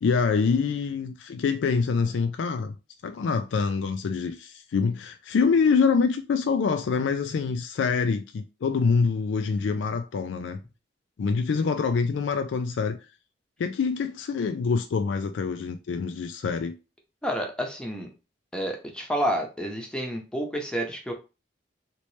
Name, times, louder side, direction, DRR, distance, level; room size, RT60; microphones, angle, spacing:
voice 1, 0.0-2.7 3.0-10.6 11.2-13.0 13.6-16.7, left 5 dB, 90° left, 0.4 m, -25 dB
voice 2, 17.2-18.1 18.5-21.1, equal, 5° left, 0.7 m, -29 dB
3.1 x 2.9 x 3.1 m
head